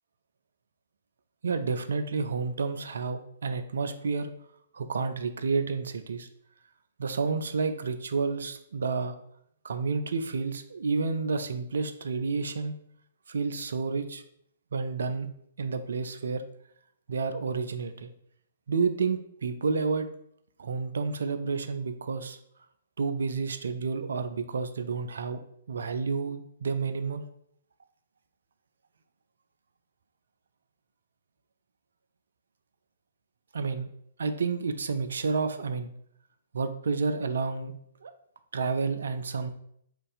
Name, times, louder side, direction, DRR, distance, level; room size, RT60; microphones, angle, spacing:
voice 1, 1.4-4.3 4.7-6.3 7.0-9.1 9.6-12.7 13.3-14.2 14.7-15.3 15.6-16.4 17.1-18.1 18.7-20.1 20.6-22.4 23.0-25.4 25.7-27.2 33.5-33.9 34.2-35.9 36.5-37.7 38.0-38.1 38.5-39.5, right 4 dB, 60° right, 9 dB, 0.3 m, -30 dB
2.5 x 2.4 x 4.0 m, 0.69 s
figure-of-eight pair, 120°, 0 cm